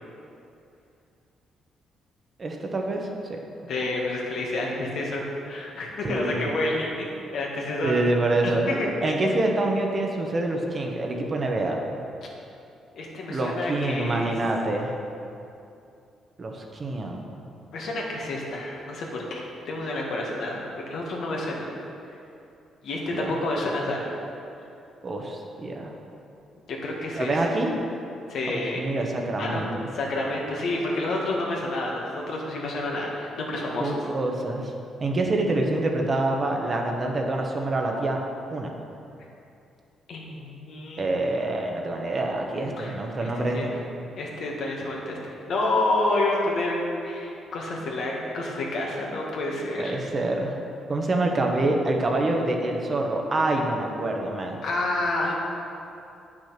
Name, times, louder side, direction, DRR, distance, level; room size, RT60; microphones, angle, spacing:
voice 1, 2.4-3.4 6.0-6.6 7.8-8.7 9.0-11.8 13.3-14.9 16.4-17.3 23.1-23.4 25.0-25.9 27.2-27.7 28.5-29.9 33.8-34.7 35.0-38.2 38.5-38.7 41.0-43.8 49.8-50.5 50.9-54.6, right 2 dB, 35° right, 1 dB, 1.2 m, -26 dB
voice 2, 3.7-8.1 8.4-9.1 12.9-14.3 17.7-21.7 22.8-24.2 26.8-27.4 28.3-28.8 29.4-29.7 29.9-33.9 40.1-41.2 42.8-42.9 43.2-43.7 44.2-46.8 47.0-50.0 54.6-55.3, left 2 dB, 65° left, -2 dB, 1.8 m, -29 dB
8.7 x 6.3 x 5.9 m, 2.7 s
cardioid pair, 90°, 0 cm